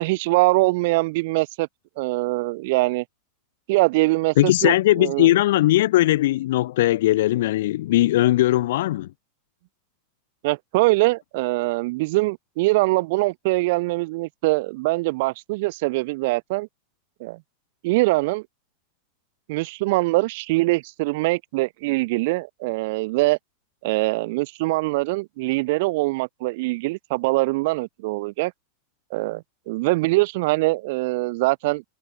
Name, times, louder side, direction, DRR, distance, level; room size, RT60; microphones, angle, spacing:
voice 1, 0.0-1.7 2.0-3.0 3.7-5.3 10.4-16.7 17.2-17.4 17.8-18.4 19.5-23.4 23.8-28.5 29.1-31.8, right 22 dB, 60° right, 0.5 m, -23 dB
voice 2, 4.4-9.1, left 15 dB, 75° left, 0.5 m, -19 dB
supercardioid pair, 140°, 0 cm